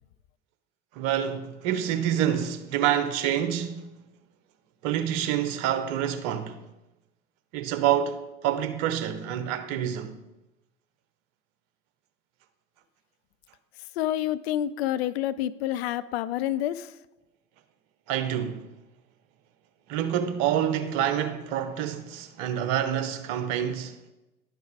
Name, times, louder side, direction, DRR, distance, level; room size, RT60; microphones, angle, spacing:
voice 1, 0.9-3.8 4.8-6.6 7.5-10.2 18.1-18.6 19.9-24.0, right 10 dB, 50° right, 0.9 m, -27 dB
voice 2, 14.0-16.9, left 12 dB, 60° left, 0.5 m, -28 dB
11.0 x 4.7 x 4.8 m
figure-of-eight pair, 80°, 37 cm